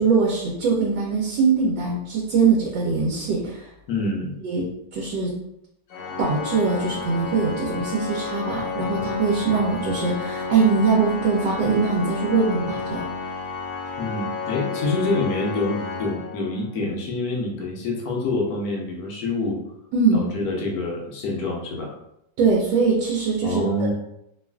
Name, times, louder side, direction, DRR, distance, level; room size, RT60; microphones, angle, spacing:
voice 1, 0.0-3.7 4.4-4.6 4.9-5.3 6.2-13.1 19.9-20.2 22.4-23.9, right 4 dB, 90° right, -3 dB, 1.3 m, -22 dB
voice 2, 3.9-4.3 14.0-19.6 20.1-22.0 23.4-23.9, left 2 dB, 65° left, -1 dB, 1.0 m, -26 dB
Organ, 5.9-16.9, left 4 dB, 85° left, 1.2 m, -31 dB
3.1 x 2.3 x 2.2 m, 0.80 s
omnidirectional pair, 1.9 m